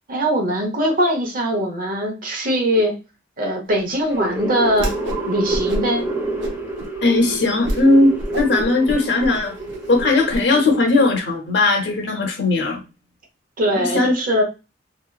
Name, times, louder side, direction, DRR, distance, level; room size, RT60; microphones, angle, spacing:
voice 1, 0.1-2.9 3.4-4.9 5.2-6.0 13.6-14.4, equal, 50° right, 3 dB, 0.9 m, -21 dB
sound 1, 3.9-11.2, right 2 dB, 10° right, 0.9 m, -29 dB
Whoosh swoosh swish, 4.7-5.2 5.5-6.0 6.4-6.9 7.3-7.4 7.6-7.8 8.2-10.4, right 1 dB, 80° right, 0.8 m, -28 dB
voice 2, 7.0-9.6 9.9-12.8 13.8-14.1, left 2 dB, 70° left, 3 dB, 0.9 m, -18 dB
3.3 x 2.9 x 2.3 m, 0.30 s
head